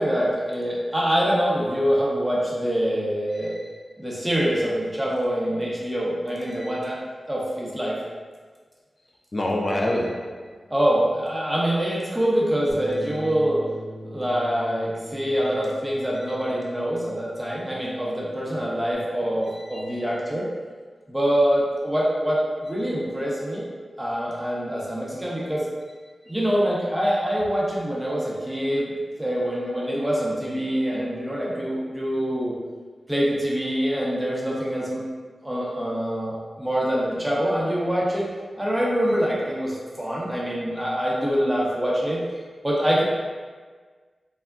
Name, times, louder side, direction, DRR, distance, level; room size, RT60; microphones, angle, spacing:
voice 1, 0.0-3.5 4.0-7.0 7.3-8.0 10.7-13.6 14.0-20.5 21.1-23.6 24.0-25.7 26.3-28.9 29.2-32.5 33.1-35.0 35.4-38.3 38.6-42.2 42.6-43.0, equal, 10° right, -6 dB, 0.7 m, -25 dB
voice 2, 3.3-3.7 6.5-6.8 9.3-10.6 13.1-13.2 19.5-19.9, left 1 dB, 45° left, -1 dB, 0.3 m, -28 dB
Bass guitar, 12.7-18.9, equal, 70° right, 0.4 m, -42 dB
3.4 x 2.0 x 2.4 m, 1.5 s
wide cardioid pair, 65°, 0 cm